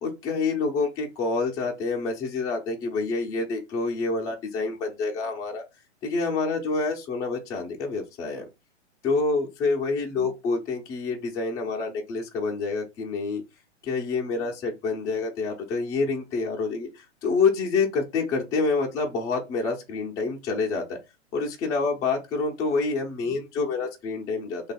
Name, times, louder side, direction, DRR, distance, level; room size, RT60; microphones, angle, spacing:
voice 1, 0.0-5.6 6.0-8.5 9.0-13.4 13.8-16.9 17.2-21.0 21.3-24.7, left 4 dB, 10° left, 0.4 m, -27 dB
2.9 x 2.3 x 4.1 m
hypercardioid pair, 130°, 36 cm